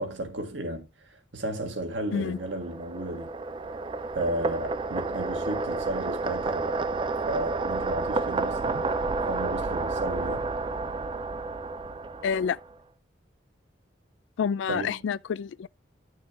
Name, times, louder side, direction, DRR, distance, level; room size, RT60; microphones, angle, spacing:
voice 1, 0.0-3.3 4.1-6.8 7.3-8.8 9.3-10.5 14.7-15.0, right 1 dB, 80° right, 1.6 m, -34 dB
sound 1, 2.0-12.7, right 3 dB, 25° right, 0.4 m, -30 dB
voice 2, 12.2-12.6 14.4-15.7, left 7 dB, 80° left, 0.3 m, -28 dB
10.5 x 6.5 x 2.3 m
head